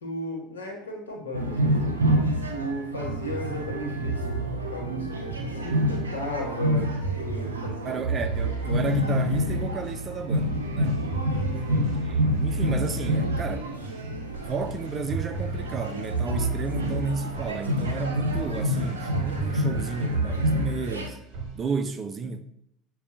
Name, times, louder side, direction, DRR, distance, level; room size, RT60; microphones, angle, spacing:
voice 1, 0.0-2.0 2.5-6.9 7.1-8.0 11.5-11.9, left 1 dB, 85° left, 1.0 m, -35 dB
sound 1, 1.3-21.1, equal, 85° right, 0.5 m, -28 dB
sound 2, 3.0-6.1 7.0-21.7, right 4 dB, 55° right, 0.9 m, -34 dB
voice 2, 7.8-11.0 12.1-13.8 14.4-21.2 21.5-22.4, right 5 dB, 35° right, 0.5 m, -32 dB
6.6 x 2.3 x 2.6 m
hypercardioid pair, 70°, 0 cm